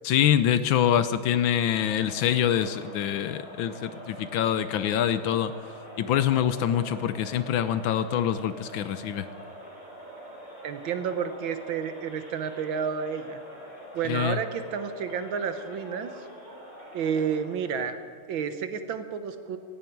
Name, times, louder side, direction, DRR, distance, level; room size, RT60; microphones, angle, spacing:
voice 1, 0.0-5.5 6.0-9.3 14.0-14.4, left 10 dB, 75° left, 12 dB, 1.3 m, -25 dB
Crowd, 1.5-17.8, right 1 dB, 20° right, 4.5 m, -45 dB
voice 2, 10.6-13.4 13.9-16.1 16.9-18.0 18.3-19.6, right 7 dB, 70° right, 9 dB, 1.7 m, -30 dB
17.5 x 16.0 x 4.6 m, 2.4 s
omnidirectional pair, 2.3 m